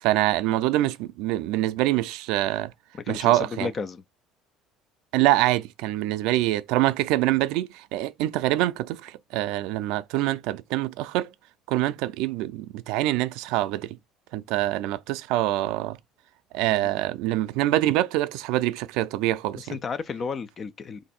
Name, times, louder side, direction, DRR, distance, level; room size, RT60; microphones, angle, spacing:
voice 1, 0.0-2.7 3.1-3.7 5.1-11.3 11.7-14.0 14.3-16.0 16.5-19.8, right 15 dB, 75° right, 0.3 m, -25 dB
voice 2, 3.1-4.0 16.7-17.0 19.5-21.0, left 5 dB, 25° left, 0.3 m, -33 dB
3.1 x 2.6 x 4.2 m
cardioid pair, 175°, 0 cm